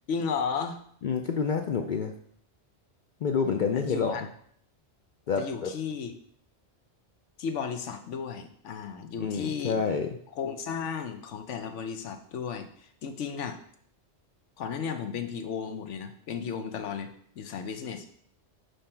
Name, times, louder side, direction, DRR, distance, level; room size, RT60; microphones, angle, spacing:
voice 1, 0.1-0.8 3.7-4.2 5.4-6.1 7.4-9.8 10.4-13.6 14.6-18.1, left 6 dB, 90° left, 7 dB, 1.1 m, -34 dB
voice 2, 1.0-2.1 3.2-4.3 5.3-5.7 9.2-10.2, left 6 dB, 60° left, 5 dB, 0.5 m, -28 dB
5.8 x 5.1 x 4.4 m, 0.63 s
omnidirectional pair, 1.2 m